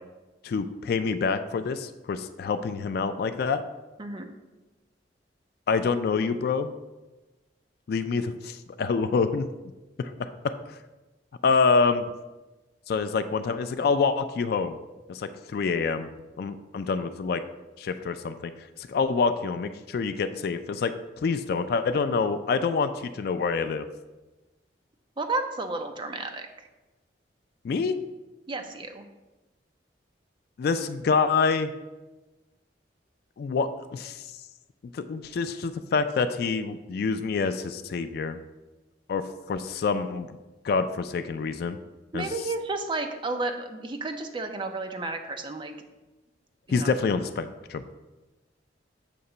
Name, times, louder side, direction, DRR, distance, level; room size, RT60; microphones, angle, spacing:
voice 1, 0.4-3.6 5.7-6.7 7.9-9.5 10.0-10.8 11.4-12.1 12.9-14.8 15.1-16.1 16.4-17.4 17.8-18.5 18.8-20.9 21.2-23.8 27.6-28.0 30.6-31.7 33.4-34.2 34.9-38.4 39.1-40.4 40.6-41.8 42.1-42.3 46.7-47.8, left 5 dB, 55° left, 11 dB, 0.3 m, -26 dB
voice 2, 25.2-26.5 28.5-29.1 42.1-45.7 46.7-46.9, right 3 dB, 25° right, 5 dB, 0.5 m, -32 dB
6.7 x 2.9 x 5.3 m, 1.1 s
head